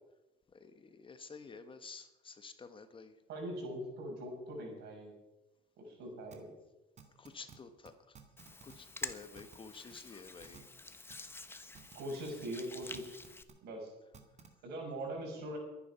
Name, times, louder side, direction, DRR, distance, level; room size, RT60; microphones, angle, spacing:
voice 1, 0.5-3.2 7.2-8.2 8.6-10.7, left 4 dB, 30° left, 9 dB, 1.3 m, -51 dB
voice 2, 3.3-5.1 5.8-6.5 11.9-13.2 13.6-13.9 14.6-15.6, right 1 dB, 75° right, 1 dB, 6.0 m, -42 dB
sound 1, 6.3-6.4 7.0-7.6 7.8-7.9 8.1-8.7 9.0-9.6 9.9-10.0 10.4-10.6 11.1-11.2 11.7-11.9 12.3-12.4 12.8-13.5 14.1-14.5, right 7 dB, 45° right, 2.1 m, -54 dB
Hands, 8.4-13.4, left 3 dB, 15° left, 1.1 m, -48 dB
22.0 x 9.9 x 5.8 m, 1.0 s
cardioid pair, 110°, 17 cm